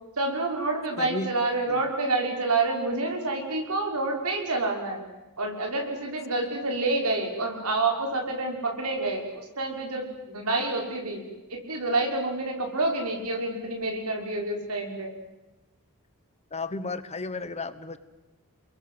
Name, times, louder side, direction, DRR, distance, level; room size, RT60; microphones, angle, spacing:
voice 1, 0.2-5.0 5.4-11.2 11.5-15.1, right 2 dB, 80° right, 2 dB, 6.2 m, -28 dB
voice 2, 1.0-1.3 1.7-1.8 16.5-18.0, left 3 dB, 30° left, 13 dB, 1.3 m, -33 dB
30.0 x 22.0 x 8.0 m, 1.0 s
head